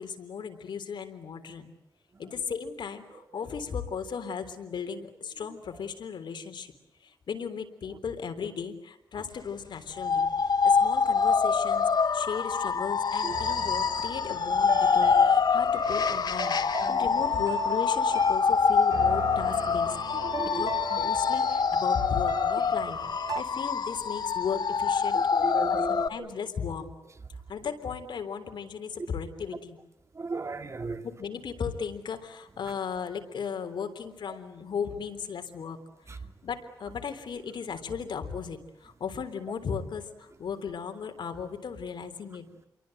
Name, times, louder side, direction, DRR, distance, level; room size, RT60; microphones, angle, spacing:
voice 1, 0.0-1.7 2.2-6.7 7.0-16.6 16.9-19.9 20.5-27.0 27.5-29.8 30.8-35.8 36.1-42.7, left 6 dB, 75° left, 3.6 m, -36 dB
sound 1, 10.0-26.1, left 6 dB, 60° left, 1.5 m, -25 dB
sound 2, 13.2-23.4, right 5 dB, 50° right, 1.6 m, -38 dB
voice 2, 20.2-20.7 21.0-21.1 25.1-26.3 30.2-31.1, right 3 dB, 35° right, 2.6 m, -36 dB
29.0 x 23.5 x 7.9 m
cardioid pair, 85°, 8 cm